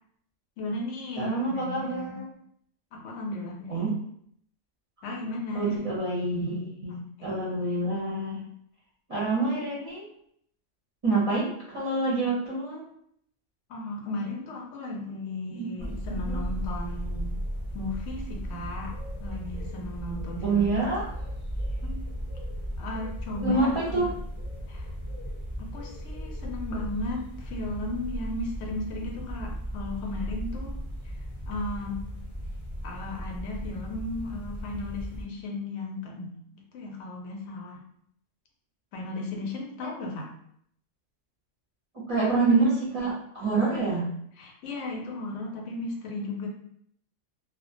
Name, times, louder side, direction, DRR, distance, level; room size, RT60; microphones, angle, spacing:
voice 1, 0.6-2.2 2.9-3.9 5.0-5.8 7.2-7.5 13.7-17.4 17.7-20.8 21.8-22.0 22.8-24.1 24.7-24.9 25.6-31.1 31.5-32.1 32.8-37.8 38.9-40.3 43.7-44.1 44.4-46.5, left 2 dB, 80° left, 0 dB, 0.9 m, -35 dB
voice 2, 1.2-2.3 3.7-3.9 5.5-8.4 9.1-10.1 11.0-12.9 15.5-15.9 16.3-16.4 20.4-21.1 23.4-24.1 42.1-44.0, right 3 dB, 40° right, -7 dB, 0.5 m, -27 dB
sound 1, 15.8-35.2, equal, 15° left, 0.8 m, -36 dB
2.3 x 2.1 x 2.5 m, 0.68 s
omnidirectional pair, 1.3 m